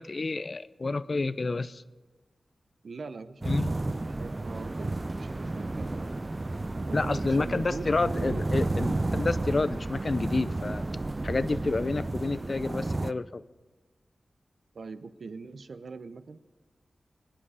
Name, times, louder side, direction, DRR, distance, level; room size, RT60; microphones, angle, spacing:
voice 1, 0.0-1.8 3.5-3.7 6.9-10.8 11.2-13.4, left 3 dB, 45° left, 15 dB, 0.5 m, -29 dB
voice 2, 2.8-6.1 6.8-8.7 14.7-16.4, right 4 dB, 70° right, 11 dB, 0.9 m, -42 dB
sound 1, 3.4-13.1, right 2 dB, 30° right, 0.5 m, -32 dB
24.5 x 10.5 x 4.9 m, 1.4 s
wide cardioid pair, 80°, 0 cm